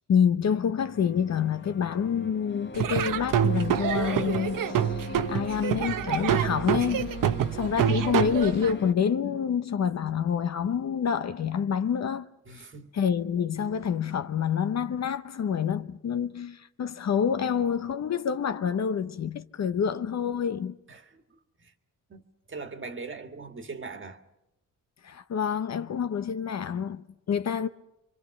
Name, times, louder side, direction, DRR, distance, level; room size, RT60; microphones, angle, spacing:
voice 1, 0.0-5.0 5.3-7.1 7.5-12.3 12.9-20.8 25.0-27.7, left 7 dB, 55° left, 0.8 m, -27 dB
sound 1, 0.8-8.9, left 3 dB, 35° left, 1.2 m, -40 dB
Laughter / Drum, 2.7-8.7, right 9 dB, 75° right, 0.9 m, -27 dB
voice 2, 7.2-7.5 12.5-12.9 20.9-21.7 22.1-22.2 22.5-24.2, right 4 dB, 35° right, 1.7 m, -41 dB
26.0 x 24.0 x 5.9 m
cardioid pair, 85°, 33 cm